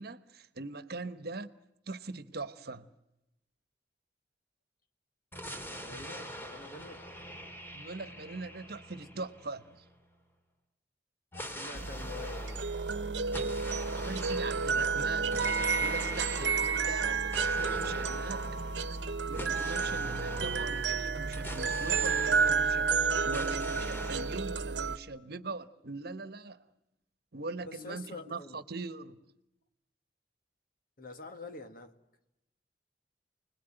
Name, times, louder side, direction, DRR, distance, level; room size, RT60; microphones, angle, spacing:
voice 1, 0.0-1.5 1.9-2.9 7.7-9.8 13.8-15.5 15.8-18.6 19.3-26.6 27.3-29.2, right 3 dB, 60° right, 1.2 m, -41 dB
sound 1, 5.3-10.0 11.3-23.0 23.3-24.4, equal, 15° left, 3.4 m, -44 dB
voice 2, 5.8-7.0 9.1-9.3 11.5-13.5 27.6-28.6 31.0-31.9, left 3 dB, 55° left, 2.1 m, -47 dB
sound 2, 11.7-25.0, right 5 dB, 80° right, 1.0 m, -31 dB
30.0 x 21.0 x 9.1 m
head